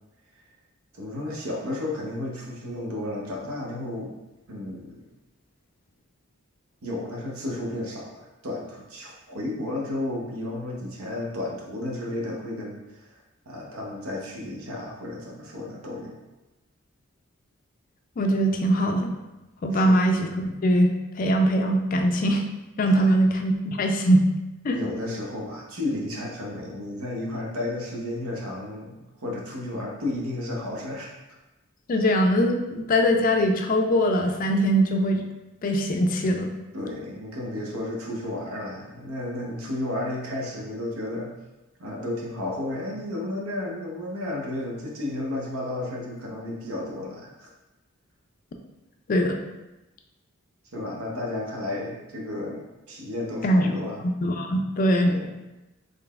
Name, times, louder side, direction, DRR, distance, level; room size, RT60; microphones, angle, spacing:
voice 1, 0.9-4.2 4.5-5.1 6.8-13.2 13.5-16.2 19.7-20.0 22.9-23.2 24.7-29.0 29.2-31.1 32.0-32.1 36.7-41.3 41.8-47.5 50.7-54.0 55.0-55.3, left 1 dB, 80° right, -2 dB, 0.8 m, -33 dB
voice 2, 18.2-19.1 19.6-22.4 22.8-24.3 24.6-24.8 31.9-35.2 35.6-36.5 49.1-49.4 53.4-53.7 54.0-55.1, equal, 40° left, 4 dB, 0.3 m, -22 dB
3.9 x 3.2 x 2.3 m, 1.0 s
head